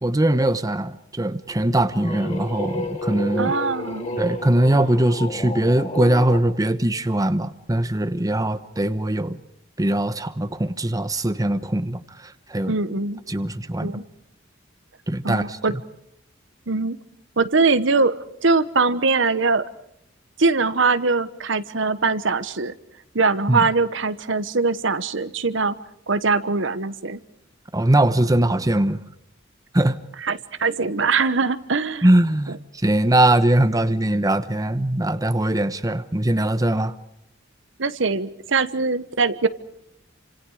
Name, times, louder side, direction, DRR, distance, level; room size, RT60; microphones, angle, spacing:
voice 1, 0.0-3.5 4.2-9.4 9.8-12.7 13.3-14.0 15.1-15.8 23.5-23.7 27.7-29.0 29.7-30.0 32.0-36.9, right 1 dB, 20° right, 12 dB, 0.9 m, -21 dB
sound 1, 1.6-6.4, left 1 dB, 35° left, 6.2 m, -31 dB
voice 2, 3.4-4.2 12.7-13.2 13.8-14.0 15.2-15.7 16.7-17.0 17.4-18.2 18.4-19.6 20.4-22.7 23.1-25.7 26.1-27.2 30.2-32.1 37.8-39.5, right 4 dB, 70° right, 13 dB, 1.2 m, -22 dB
29.0 x 26.5 x 4.9 m, 0.75 s
head